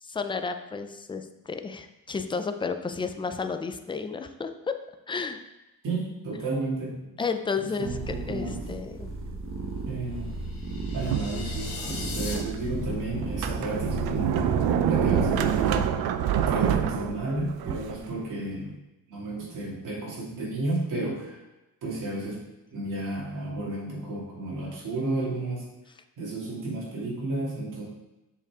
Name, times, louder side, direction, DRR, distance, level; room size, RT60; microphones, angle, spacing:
voice 1, 0.0-4.8 5.1-5.4 7.2-9.1, left 5 dB, 15° left, 7 dB, 0.4 m, -32 dB
voice 2, 5.8-7.2 7.6-8.6 9.9-10.3 10.9-14.6 14.8-15.8 16.3-18.7 19.1-21.4 21.8-22.4 22.7-25.6 26.2-27.8, right 2 dB, 55° right, -4 dB, 2.6 m, -32 dB
sound 1, 7.8-15.9, right 2 dB, 35° right, 1.2 m, -34 dB
sound 2, 10.4-12.4, left 4 dB, 65° left, 1.4 m, -39 dB
Sliding door, 11.1-12.0 12.5-12.6 13.2-18.0, right 9 dB, 75° right, 0.6 m, -26 dB
7.0 x 5.4 x 3.6 m, 0.99 s
cardioid pair, 135°, 37 cm